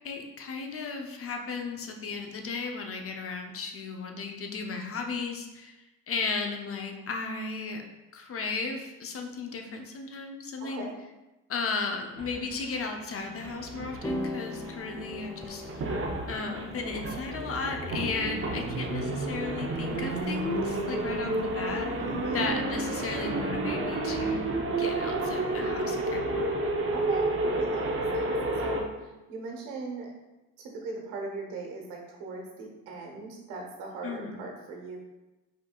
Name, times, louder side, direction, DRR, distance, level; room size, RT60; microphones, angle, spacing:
voice 1, 0.0-7.8 8.1-10.9 11.5-15.6 16.3-21.9 22.3-26.5 34.0-34.4, left 4 dB, 40° left, 3 dB, 0.8 m, -35 dB
voice 2, 10.6-10.9 18.0-18.6 22.0-22.6 26.9-30.1 30.6-35.0, right 3 dB, 75° right, 0 dB, 1.3 m, -39 dB
sound 1, 12.2-28.8, right 2 dB, 35° right, 0.9 m, -31 dB
sound 2, 14.0-22.5, left 1 dB, 10° left, 0.5 m, -42 dB
5.0 x 4.2 x 2.4 m, 1.0 s
supercardioid pair, 75°, 36 cm